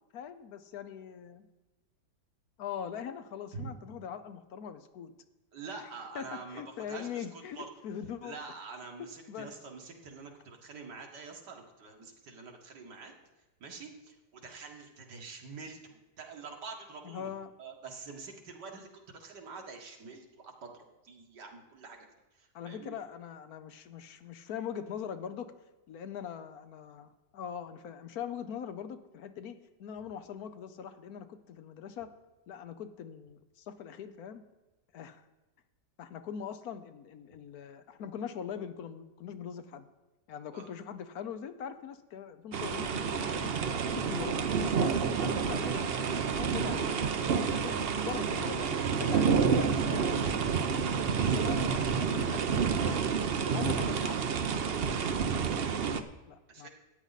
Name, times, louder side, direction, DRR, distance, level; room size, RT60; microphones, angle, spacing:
voice 1, 0.1-1.4 2.6-5.1 6.1-6.3 6.5-8.4 9.3-9.5 17.0-17.5 22.5-25.5 25.9-32.1 32.5-34.4 34.9-35.2 36.0-39.9 40.3-43.6 43.8-46.1 46.3-50.3 50.7-53.1 53.4-54.2 54.7-56.7, left 8 dB, 70° left, 11 dB, 1.2 m, -42 dB
voice 2, 5.5-7.7 8.2-13.1 13.6-17.3 17.6-23.0 40.5-40.7 56.5-56.7, right 4 dB, 85° right, 2 dB, 2.3 m, -46 dB
sound 1, 42.5-56.0, right 6 dB, 55° right, 0.7 m, -29 dB
13.5 x 9.5 x 4.0 m, 1.1 s
omnidirectional pair, 1.8 m